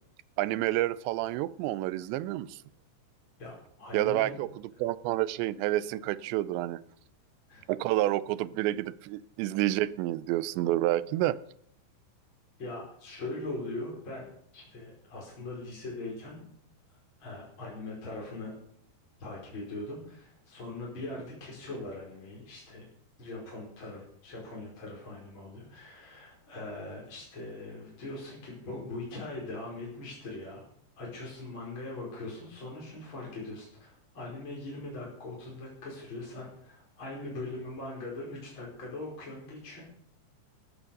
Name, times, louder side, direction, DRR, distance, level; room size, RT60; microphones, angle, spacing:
voice 1, 0.4-2.6 3.9-4.5 4.8-6.8 7.7-11.4, right 15 dB, 85° right, 17 dB, 2.9 m, -29 dB
voice 2, 3.4-4.3 7.5-7.7 12.6-14.3 14.5-16.4 16.9-18.6 19.2-22.9 23.2-30.7 31.0-39.8, left 2 dB, 25° left, -4 dB, 5.4 m, -41 dB
13.5 x 11.0 x 6.6 m, 0.67 s
omnidirectional pair, 5.1 m